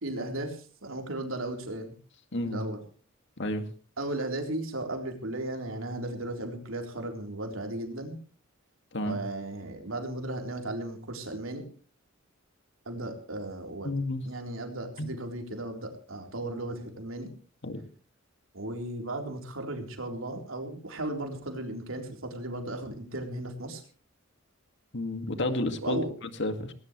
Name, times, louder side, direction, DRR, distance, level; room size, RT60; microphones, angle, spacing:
voice 1, 0.0-1.9 2.5-2.8 4.0-8.2 9.0-11.6 12.9-13.9 14.2-17.3 18.5-23.8 25.8-26.1, right 1 dB, 75° right, 3 dB, 3.9 m, -35 dB
voice 2, 2.3-2.6 3.4-3.6 8.9-9.2 13.8-14.3 15.0-15.1 17.6-17.8 24.9-26.7, left 1 dB, 60° left, 8 dB, 2.1 m, -31 dB
19.0 x 19.0 x 3.2 m, 0.39 s
head